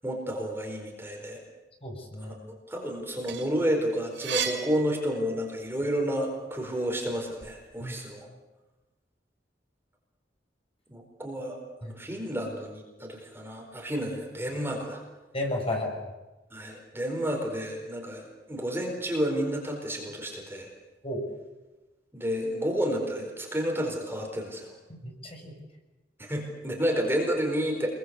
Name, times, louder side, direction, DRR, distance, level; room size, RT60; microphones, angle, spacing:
voice 1, 0.0-1.4 2.2-8.3 10.9-15.0 16.5-20.7 22.1-24.7 26.2-27.9, equal, 15° right, 1 dB, 4.6 m, -31 dB
voice 2, 1.8-2.4 7.8-7.9 11.8-11.9 15.3-15.9 21.0-21.2 25.0-25.5, left 1 dB, 35° left, 1 dB, 6.7 m, -33 dB
sound 1, 3.0-5.7 6.1-7.5, right 8 dB, 85° right, 5.1 m, -36 dB
27.5 x 22.0 x 8.2 m, 1.1 s
head